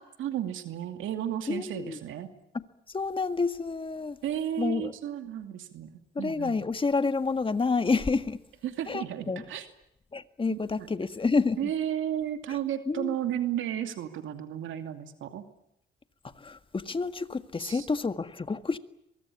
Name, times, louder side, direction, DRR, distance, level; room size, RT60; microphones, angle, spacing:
voice 1, 0.2-2.3 4.2-5.9 6.2-6.6 8.6-9.7 10.5-10.9 11.6-15.5 17.6-17.9, right 10 dB, 80° right, 8 dB, 2.6 m, -33 dB
voice 2, 1.5-2.0 2.9-4.2 4.6-4.9 6.2-8.4 8.9-9.4 10.1-11.7 12.9-13.2 16.4-18.8, left 4 dB, 25° left, 10 dB, 1.8 m, -29 dB
23.5 x 23.0 x 8.5 m, 0.81 s
cardioid pair, 90°, 20 cm